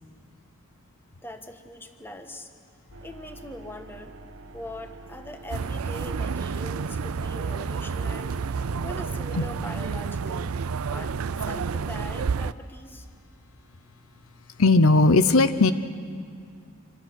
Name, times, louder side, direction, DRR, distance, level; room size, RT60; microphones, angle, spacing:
voice 1, 1.2-2.5 3.0-4.1 4.5-10.6 10.9-11.2 11.5-13.1, left 1 dB, 10° left, 6 dB, 1.4 m, -41 dB
sound 1, 2.9-9.6, right 2 dB, 65° right, 1.3 m, -46 dB
sound 2, 5.5-12.5, right 5 dB, 85° right, 0.5 m, -30 dB
voice 2, 14.6-15.7, left 3 dB, 80° left, 12 dB, 0.8 m, -17 dB
26.0 x 25.5 x 6.3 m, 2.2 s
head